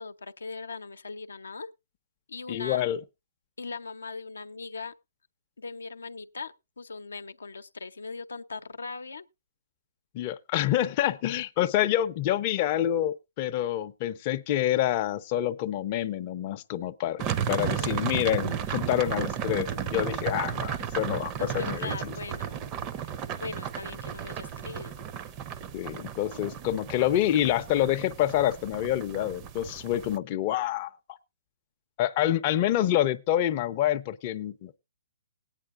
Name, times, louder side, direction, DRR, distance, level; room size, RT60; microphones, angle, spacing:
voice 1, 0.0-1.7 2.3-2.8 3.6-4.9 5.6-9.3 17.6-18.0 21.4-25.0, left 4 dB, 85° left, 0.6 m, -40 dB
voice 2, 2.5-3.0 10.1-22.1 25.7-30.9 32.0-34.8, left 12 dB, 35° left, 0.5 m, -27 dB
sound 1, 17.2-30.2, right 9 dB, 30° right, 0.6 m, -34 dB
19.5 x 9.0 x 2.4 m
hypercardioid pair, 140°, 0 cm